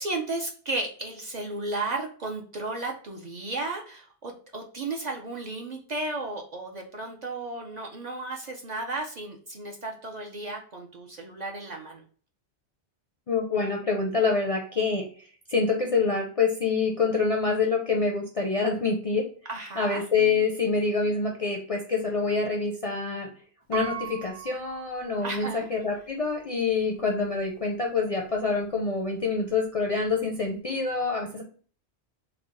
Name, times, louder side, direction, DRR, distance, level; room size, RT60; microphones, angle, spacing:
voice 1, 0.0-12.0 19.5-20.1 25.2-25.7, right 2 dB, 50° right, 1 dB, 0.6 m, -34 dB
voice 2, 13.3-15.1 15.5-19.3 19.8-23.3 23.7-31.4, left 4 dB, 45° left, 0 dB, 0.4 m, -26 dB
Piano, 23.7-25.7 26.3-26.4, right 10 dB, 65° right, 1.0 m, -38 dB
3.4 x 2.2 x 3.7 m, 0.43 s
omnidirectional pair, 1.1 m